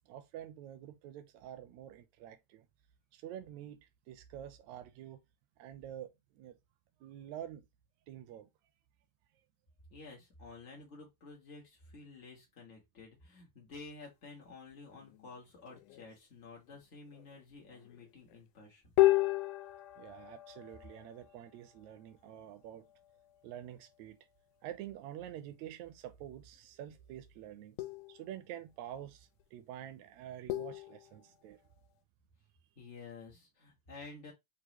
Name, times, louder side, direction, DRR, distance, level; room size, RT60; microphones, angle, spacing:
voice 1, 0.1-2.7 3.1-5.2 5.6-6.6 7.0-7.7 8.1-8.5 20.0-22.9 23.4-24.2 24.6-27.8 28.1-31.6, right 11 dB, 80° right, 1.8 m, -47 dB
voice 2, 9.9-18.9 32.8-34.3, left 3 dB, 70° left, 0.6 m, -51 dB
sound 1, 14.9-16.2 16.7-16.8 17.1-18.4 19.0-22.1 22.7-23.5 26.5-26.7 27.8-28.4 29.4-29.5 30.5-31.7, left 18 dB, 90° left, 2.1 m, -34 dB
6.3 x 2.5 x 3.0 m
omnidirectional pair, 3.5 m